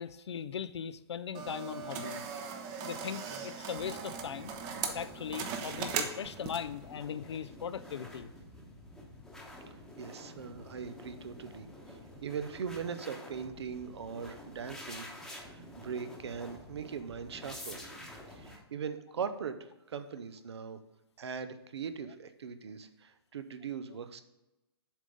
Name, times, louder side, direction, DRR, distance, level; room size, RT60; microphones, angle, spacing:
voice 1, 0.0-2.3 2.8-4.5 4.9-8.3, left 8 dB, 85° left, 15 dB, 0.4 m, -39 dB
sound 1, 1.3-6.8, right 6 dB, 30° right, 0.7 m, -39 dB
sound 2, 3.8-18.6, left 1 dB, 5° left, 1.0 m, -49 dB
voice 2, 9.7-15.1 15.4-17.8 18.3-20.8 21.2-24.2, right 6 dB, 80° right, 10 dB, 0.7 m, -40 dB
7.3 x 3.6 x 5.2 m, 0.97 s
hypercardioid pair, 140°, 14 cm